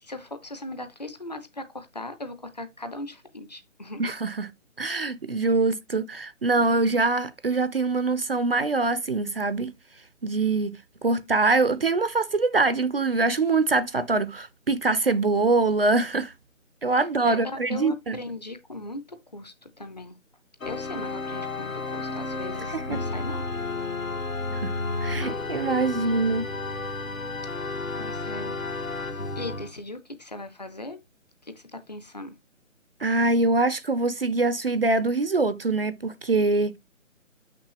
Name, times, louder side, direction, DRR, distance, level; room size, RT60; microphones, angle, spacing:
voice 1, 0.0-4.0 17.2-20.1 20.6-23.4 28.0-28.6 29.4-31.0 31.4-32.3, left 2 dB, 35° left, 0.6 m, -38 dB
voice 2, 4.0-4.5 4.8-9.7 10.2-16.3 16.8-18.2 22.7-23.0 24.5-24.7 25.0-26.5 33.0-36.8, right 3 dB, 50° right, 0.4 m, -24 dB
Organ, 20.6-29.7, left 3 dB, 80° left, 1.6 m, -32 dB
6.2 x 5.9 x 2.9 m
figure-of-eight pair, 155°, 40 cm